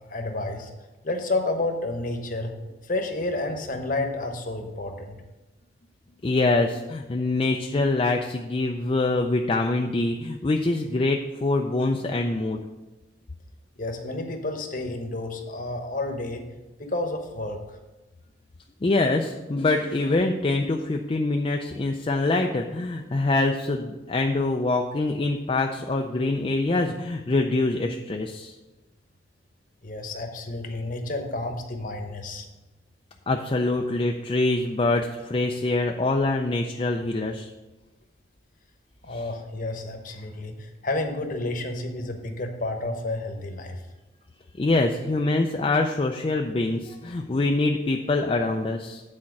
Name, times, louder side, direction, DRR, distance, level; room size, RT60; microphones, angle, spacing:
voice 1, 0.1-0.7 1.0-2.5 2.8-5.2 13.8-16.4 16.8-17.8 29.8-32.4 39.0-43.8, left 2 dB, 45° left, 4 dB, 1.0 m, -30 dB
voice 2, 6.2-12.6 18.8-28.5 33.3-37.5 39.1-39.2 44.6-49.0, left 2 dB, 30° left, 3 dB, 0.4 m, -24 dB
8.6 x 4.3 x 6.0 m, 1.1 s
head